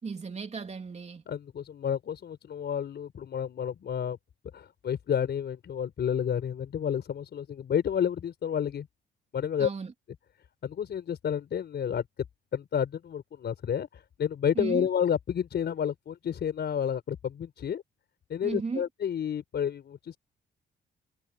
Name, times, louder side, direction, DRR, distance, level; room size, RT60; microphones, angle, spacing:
voice 1, 0.0-1.2 9.6-9.9 14.5-14.9 18.4-18.8, right 4 dB, 35° right, 3.1 m, -35 dB
voice 2, 1.3-4.2 4.5-8.9 9.3-9.7 10.6-12.1 12.5-17.8 18.3-20.2, left 8 dB, 60° left, 4.8 m, -30 dB
cardioid pair, 90°, 20 cm